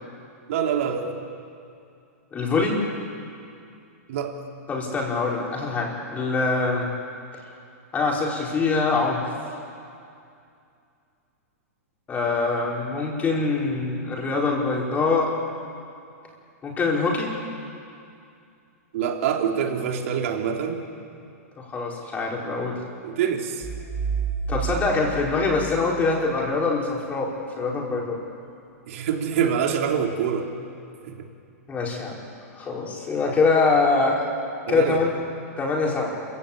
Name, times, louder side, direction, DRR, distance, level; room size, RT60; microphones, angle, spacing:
voice 1, 0.5-1.2 4.1-4.3 18.9-20.8 23.0-23.7 28.9-30.5 31.1-31.2 34.7-35.0, right 7 dB, 60° right, 2 dB, 3.2 m, -25 dB
voice 2, 2.3-2.8 4.7-6.9 7.9-9.2 12.1-15.3 16.6-17.3 21.6-22.8 24.5-28.2 31.7-32.2 32.5-34.2 34.7-35.1 35.6-36.2, left 3 dB, 20° left, -2 dB, 4.9 m, -24 dB
sound 1, 23.6-26.3, right 6 dB, 10° right, 1.9 m, -30 dB
27.5 x 16.0 x 8.8 m, 2.5 s
hypercardioid pair, 140°, 8 cm